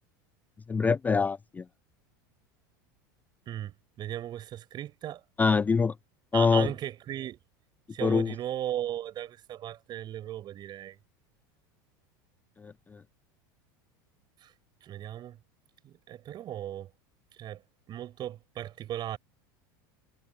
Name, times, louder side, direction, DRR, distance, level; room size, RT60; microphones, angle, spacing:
voice 1, 0.7-1.6 5.4-5.9 6.3-6.7 8.0-8.3 12.6-12.7, left 5 dB, 15° left, 0.4 m, -24 dB
voice 2, 3.5-5.2 6.3-7.4 7.9-11.0 14.4-14.5 14.8-15.4 15.8-16.9 17.4-17.6 17.9-19.2, right 12 dB, 40° right, 5.9 m, -37 dB
supercardioid pair, 105°, 11 cm